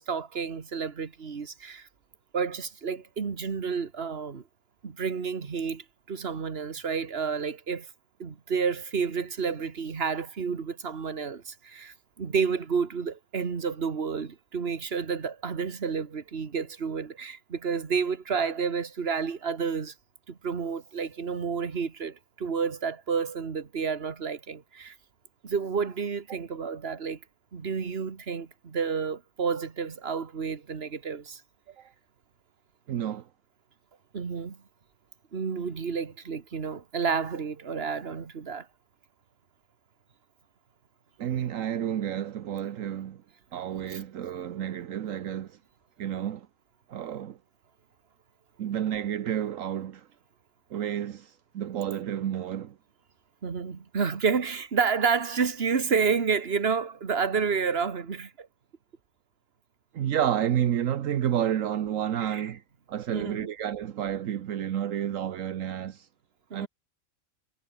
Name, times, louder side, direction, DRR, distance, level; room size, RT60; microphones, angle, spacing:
voice 1, 0.0-1.9 2.3-4.4 4.8-7.9 8.2-19.9 20.3-25.0 25.4-27.2 27.5-31.4 34.1-34.6 35.3-38.7 43.9-44.0 53.4-58.5 62.2-62.5 63.1-63.5 66.5-66.7, right 5 dB, 50° right, 1.8 m, -30 dB
voice 2, 32.9-33.3 41.2-43.2 43.5-45.6 46.0-46.5 46.9-47.4 48.6-50.1 50.7-52.7 59.9-62.6 62.9-66.1 66.5-66.7, right 10 dB, 75° right, 1.2 m, -30 dB
omnidirectional pair, 1.4 m